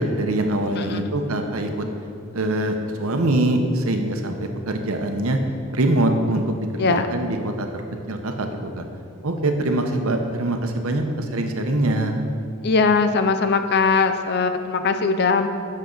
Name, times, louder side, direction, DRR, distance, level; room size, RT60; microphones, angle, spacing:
voice 1, 0.0-1.8 2.3-5.4 5.7-7.7 8.1-8.8 9.2-12.3, right 1 dB, 75° right, 5 dB, 0.9 m, -23 dB
voice 2, 0.7-1.1 6.8-7.0 12.6-15.5, left 4 dB, 50° left, 9 dB, 0.5 m, -20 dB
12.0 x 6.5 x 4.0 m, 2.3 s
head